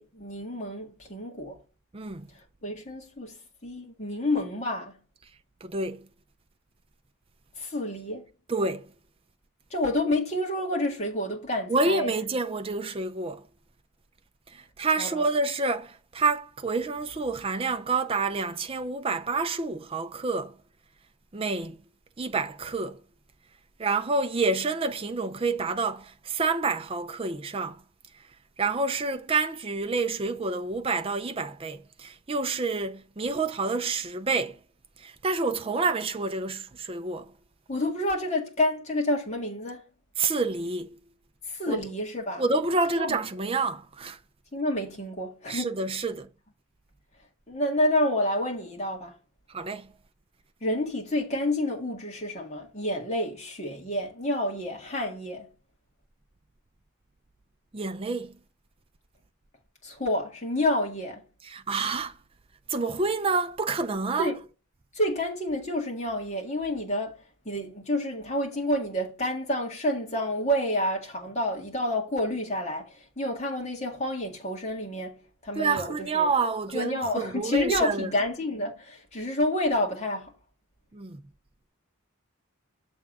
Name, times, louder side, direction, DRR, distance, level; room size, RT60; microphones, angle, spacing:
voice 1, 0.0-1.6 2.6-3.4 3.6-5.0 7.6-8.2 9.7-12.1 15.0-15.2 37.7-39.8 41.5-42.4 42.9-43.2 44.5-45.7 47.5-49.1 50.6-55.5 59.8-61.2 64.2-64.4 64.9-67.2 67.5-75.2 75.4-76.3 76.7-80.3, left 1 dB, 30° left, 2.1 m, -29 dB
voice 2, 1.9-2.3 5.6-6.1 8.5-8.9 11.7-13.5 14.5-20.6 21.3-21.8 22.2-23.0 23.8-27.8 28.1-28.2 28.6-34.6 35.0-37.3 40.2-41.0 41.7-41.8 42.4-44.2 45.5-46.3 49.5-49.9 57.7-58.4 61.4-62.2 62.7-64.3 75.5-78.2 80.9-81.2, right 3 dB, 25° right, 0.5 m, -28 dB
7.2 x 3.5 x 6.2 m
head